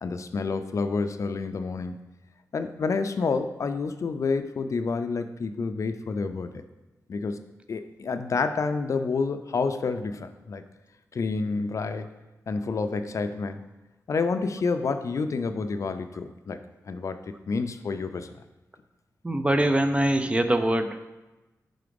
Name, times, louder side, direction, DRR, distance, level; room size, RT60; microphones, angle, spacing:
voice 1, 0.0-1.9 2.5-6.5 7.1-10.6 11.1-12.1 12.5-13.6 14.1-16.6 16.9-17.2 17.5-18.3, left 4 dB, 55° left, 9 dB, 0.4 m, -29 dB
voice 2, 19.2-21.1, right 1 dB, 20° right, 8 dB, 0.4 m, -23 dB
4.8 x 3.8 x 5.2 m, 1.1 s
wide cardioid pair, 85°, 6 cm